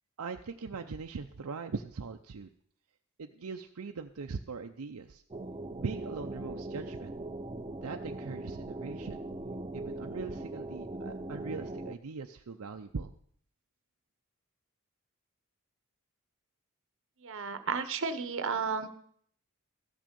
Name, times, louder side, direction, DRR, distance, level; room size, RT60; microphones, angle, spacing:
voice 1, 0.2-2.5 3.2-5.2 5.8-7.1 7.8-9.2 9.7-13.1, right 4 dB, 85° right, 5 dB, 0.6 m, -40 dB
sound 1, 5.3-12.0, right 2 dB, 25° right, 0.6 m, -40 dB
voice 2, 17.2-18.9, right 5 dB, 65° right, 10 dB, 1.0 m, -33 dB
14.0 x 6.2 x 6.9 m, 0.62 s
head